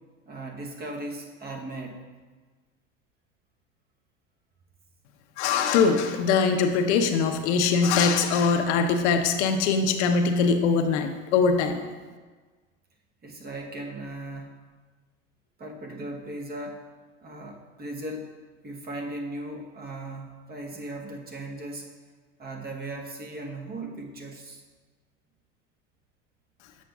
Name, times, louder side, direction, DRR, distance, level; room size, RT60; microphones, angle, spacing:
voice 1, 0.3-2.0 13.2-14.6 15.6-16.8 17.2-18.3 18.6-21.9 22.4-24.6, right 1 dB, 25° right, 1 dB, 1.0 m, -37 dB
voice 2, 5.4-11.8, left 5 dB, 75° left, 6 dB, 0.7 m, -22 dB
7.2 x 6.5 x 2.3 m, 1.4 s
hypercardioid pair, 95°, 35 cm